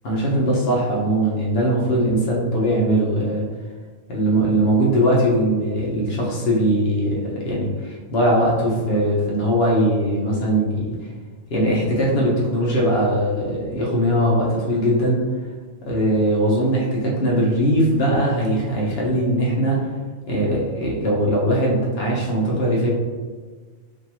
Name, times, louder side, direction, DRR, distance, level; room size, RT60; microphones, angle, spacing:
voice 1, 0.0-3.4 4.1-11.0 11.5-15.2 15.8-19.8 20.3-22.9, right 1 dB, 50° left, -4 dB, 1.1 m, -20 dB
4.4 x 2.6 x 2.9 m, 1.5 s
omnidirectional pair, 1.4 m